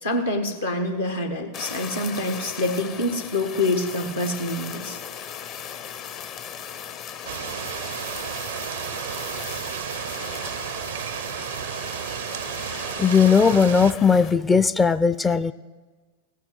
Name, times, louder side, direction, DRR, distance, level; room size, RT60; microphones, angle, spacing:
voice 1, 0.0-5.0, left 1 dB, 75° left, 5 dB, 1.5 m, -26 dB
Fire, 1.5-14.4, left 8 dB, 40° left, 0.7 m, -37 dB
sound 1, 7.2-13.9, right 11 dB, 60° right, 0.4 m, -32 dB
voice 2, 13.0-15.5, left 5 dB, 15° left, 15 dB, 0.4 m, -18 dB
16.0 x 9.1 x 8.1 m, 1.4 s
figure-of-eight pair, 90°, 0 cm